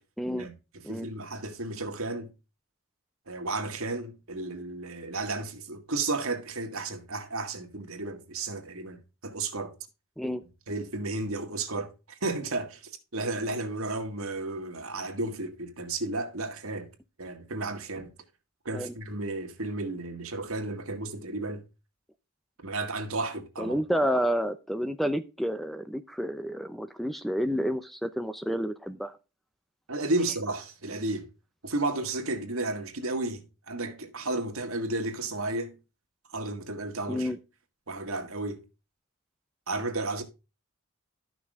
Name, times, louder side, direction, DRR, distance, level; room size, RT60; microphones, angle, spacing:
voice 1, 0.2-0.5 0.8-1.1 10.2-10.4 18.7-18.9 23.6-29.2 37.1-37.4, equal, ahead, 0.5 m, -30 dB
voice 2, 0.9-2.3 3.3-9.7 10.7-16.9 17.2-18.1 18.7-21.6 22.6-23.8 29.9-31.3 31.6-35.8 36.3-37.3 37.9-38.6 39.7-40.2, right 2 dB, 75° right, 1.9 m, -33 dB
13.0 x 6.1 x 3.6 m
head